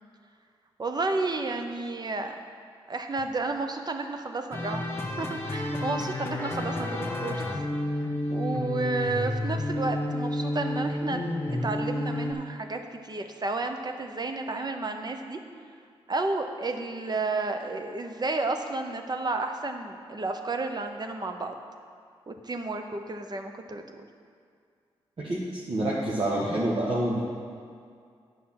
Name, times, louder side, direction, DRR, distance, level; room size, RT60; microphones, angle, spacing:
voice 1, 0.8-2.4 2.9-4.9 5.2-7.4 8.0-11.2 11.5-15.4 16.1-21.6 22.3-24.1, right 3 dB, 40° right, 5 dB, 0.9 m, -31 dB
sound 1, 4.5-12.3, left 1 dB, 20° left, 1.5 m, -30 dB
voice 2, 25.2-27.2, right 1 dB, 55° right, -6 dB, 1.5 m, -27 dB
8.5 x 5.7 x 5.9 m, 2.2 s
supercardioid pair, 45°, 11 cm